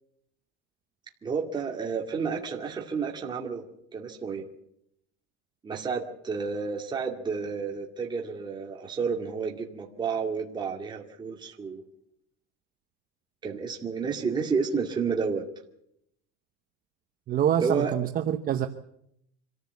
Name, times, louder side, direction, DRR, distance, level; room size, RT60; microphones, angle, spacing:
voice 1, 1.2-3.7 3.9-4.4 5.6-11.8 13.4-15.4 17.6-17.9, right 5 dB, 15° right, 0 dB, 2.4 m, -30 dB
voice 2, 17.3-18.7, right 10 dB, 30° right, 6 dB, 1.0 m, -26 dB
25.5 x 15.0 x 8.3 m, 0.77 s
cardioid pair, 170°, 29 cm